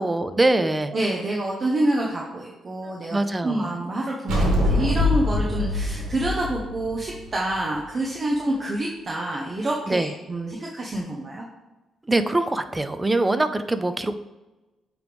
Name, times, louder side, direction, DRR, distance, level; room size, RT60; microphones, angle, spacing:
voice 1, 0.0-0.9 2.8-3.6 9.9-10.1 12.1-14.2, right 2 dB, 15° right, 10 dB, 0.4 m, -23 dB
voice 2, 0.6-11.4, right 1 dB, 35° right, -2 dB, 0.8 m, -27 dB
sound 1, 4.3-7.7, left 2 dB, 85° right, 1.4 m, -24 dB
8.9 x 3.1 x 3.4 m, 1.1 s
cardioid pair, 90°, 0 cm